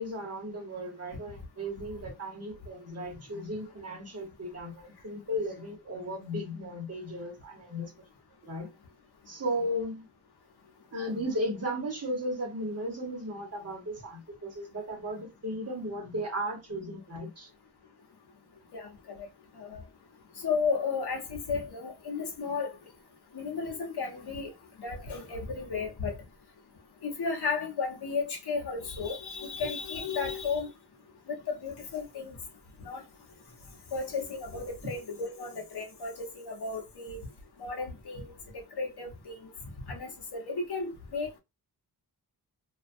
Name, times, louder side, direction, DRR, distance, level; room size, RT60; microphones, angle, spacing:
voice 1, 0.0-7.9 8.4-8.7 9.3-10.1 10.9-17.5, equal, 35° right, 1.0 m, -35 dB
voice 2, 18.7-19.3 19.5-19.8 20.4-22.8 23.3-24.5 24.8-26.2 27.0-30.7 31.3-32.4 32.8-33.0 33.9-37.2 37.6-38.4 38.8-39.5 39.8-41.3, left 4 dB, 65° left, 0.9 m, -34 dB
2.4 x 2.2 x 2.5 m
wide cardioid pair, 125°, 42 cm